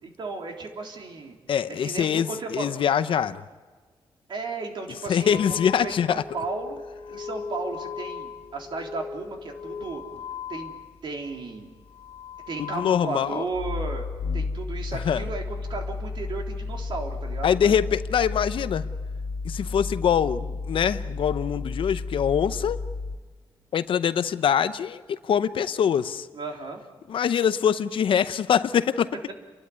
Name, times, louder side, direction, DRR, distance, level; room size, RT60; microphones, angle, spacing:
voice 1, 0.0-1.4 1.7-2.8 4.3-6.8 7.1-10.0 10.5-10.7 11.0-11.7 12.5-14.0 14.3-17.8 26.3-26.8, right 3 dB, 55° right, 2 dB, 3.5 m, -34 dB
voice 2, 1.5-3.4 5.1-6.2 12.7-13.4 14.9-15.2 17.4-18.8 19.4-22.8 23.7-26.3 27.1-29.1, left 8 dB, 65° left, 13 dB, 0.8 m, -24 dB
sound 1, 5.2-11.5 11.8-23.2, left 4 dB, 80° left, 2.1 m, -34 dB
30.0 x 12.0 x 9.8 m, 1.4 s
cardioid pair, 105°, 9 cm